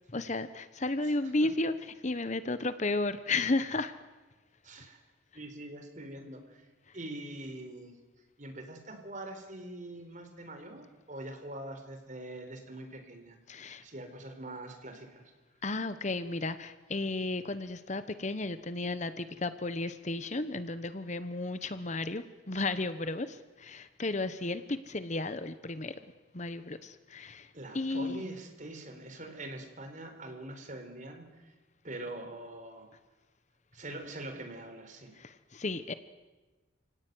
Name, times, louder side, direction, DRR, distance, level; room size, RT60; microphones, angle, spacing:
voice 1, 0.1-3.9 13.5-13.8 15.6-25.9 26.3-27.5 27.7-28.2 35.2-35.9, left 2 dB, 35° left, 12 dB, 1.0 m, -33 dB
voice 2, 4.6-5.0 5.3-6.7 6.9-8.0 8.4-13.4 13.8-15.3 27.5-31.5 31.8-32.9 33.7-35.1, right 1 dB, 40° right, 6 dB, 4.1 m, -43 dB
29.5 x 18.0 x 9.4 m, 1.2 s
head